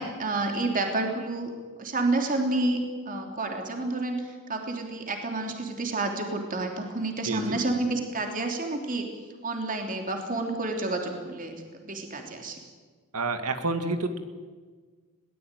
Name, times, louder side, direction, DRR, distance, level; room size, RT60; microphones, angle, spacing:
voice 1, 0.0-1.5 1.8-2.8 3.0-9.1 9.4-12.6, right 2 dB, 40° right, 3 dB, 3.2 m, -29 dB
voice 2, 7.2-7.6 13.1-14.2, right 3 dB, 85° right, 8 dB, 2.2 m, -29 dB
21.5 x 18.5 x 9.1 m, 1.4 s
head